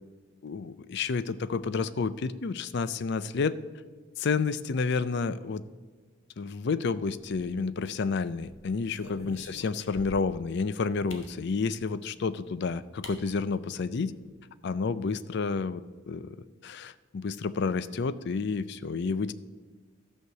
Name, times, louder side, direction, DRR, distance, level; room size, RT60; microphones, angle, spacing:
voice 1, 0.4-3.6 4.2-5.6 6.4-14.1 14.6-15.8 16.1-16.4 16.6-19.3, left 4 dB, 60° left, 16 dB, 0.5 m, -30 dB
sound 1, 7.2-7.9 8.4-10.4 11.1-11.3 12.4-12.5 13.0-13.2 13.5-13.6 13.9-14.3, left 2 dB, 75° left, 1.4 m, -47 dB
12.5 x 6.5 x 6.6 m, 1.4 s
head